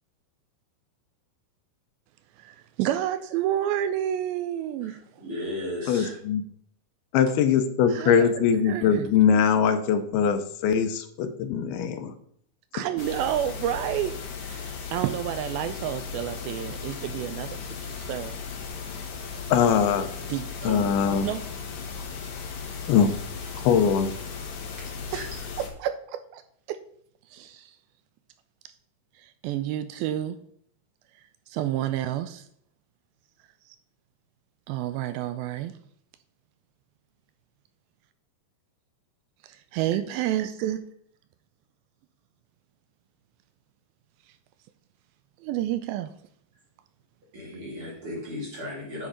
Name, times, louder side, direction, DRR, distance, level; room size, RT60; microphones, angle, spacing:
voice 1, 2.4-5.0 7.9-9.1 12.7-18.4 20.3-21.4 25.1-25.3 25.6-26.4 26.7-26.8 27.3-27.7 29.2-30.4 31.5-32.5 34.7-35.7 39.4-40.8 45.4-46.1, right 11 dB, 80° right, 2.3 m, -30 dB
voice 2, 4.8-6.2 20.6-20.8 25.1-25.2 47.3-49.1, left 1 dB, 40° right, 2.6 m, -35 dB
voice 3, 5.9-6.4 7.1-12.1 19.5-20.1 20.6-21.3 22.9-23.1 23.6-24.1, left 7 dB, 80° left, 2.7 m, -22 dB
sound 1, 13.0-25.7, left 5 dB, 60° left, 2.2 m, -36 dB
9.7 x 4.4 x 5.0 m
omnidirectional pair, 4.4 m